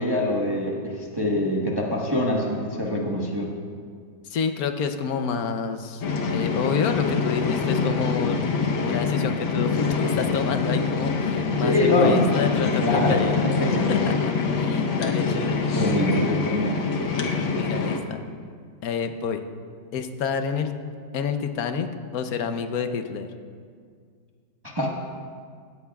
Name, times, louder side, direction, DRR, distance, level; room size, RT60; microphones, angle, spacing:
voice 1, 0.0-3.5 11.6-12.3 12.8-13.9 15.3-16.8 24.7-24.9, left 1 dB, 15° right, -3 dB, 1.0 m, -24 dB
voice 2, 4.3-6.0 6.3-8.4 8.8-13.4 13.9-15.7 17.5-18.2 18.8-19.4 19.9-20.7 21.1-21.9 22.1-23.3, left 6 dB, 60° left, 7 dB, 1.1 m, -28 dB
sound 1, 6.0-18.0, left 5 dB, 90° left, 1.8 m, -25 dB
17.5 x 14.0 x 2.4 m, 2.1 s
omnidirectional pair, 2.1 m